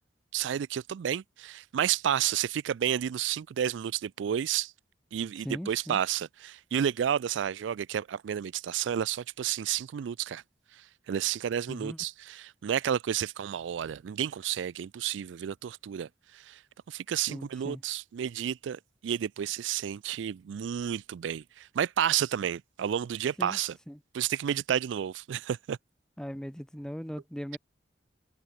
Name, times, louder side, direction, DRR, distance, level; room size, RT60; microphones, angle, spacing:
voice 1, 0.3-4.7 5.1-10.4 10.7-16.6 16.9-23.8 24.1-25.8, right 9 dB, 80° right, 0.3 m, -31 dB
voice 2, 5.4-6.0 11.7-12.0 17.3-17.8 23.4-23.6 23.9-24.0 26.2-27.6, equal, 5° left, 1.3 m, -39 dB
head